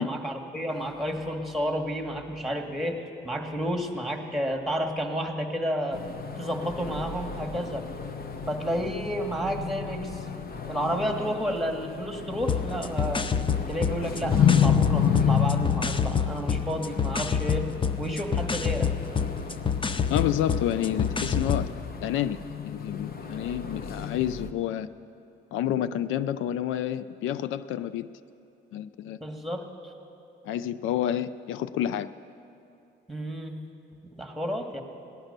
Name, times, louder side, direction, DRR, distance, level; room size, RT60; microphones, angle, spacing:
voice 1, 0.0-6.0 6.4-7.9 8.4-10.3 10.7-13.3 13.7-17.7 18.0-18.9 29.2-29.9 33.1-33.6 34.2-34.8, equal, ahead, 3 dB, 1.7 m, -31 dB
sound 1, 5.9-24.5, left 8 dB, 50° left, 0.9 m, -31 dB
sound 2, 12.4-21.7, left 6 dB, 25° left, 0.6 m, -28 dB
voice 2, 20.1-21.7 22.0-22.4 22.6-24.9 25.5-28.2 28.7-29.2 30.4-32.1, left 11 dB, 85° left, 15 dB, 0.4 m, -29 dB
18.0 x 11.5 x 6.7 m, 2.8 s
cardioid pair, 90°, 20 cm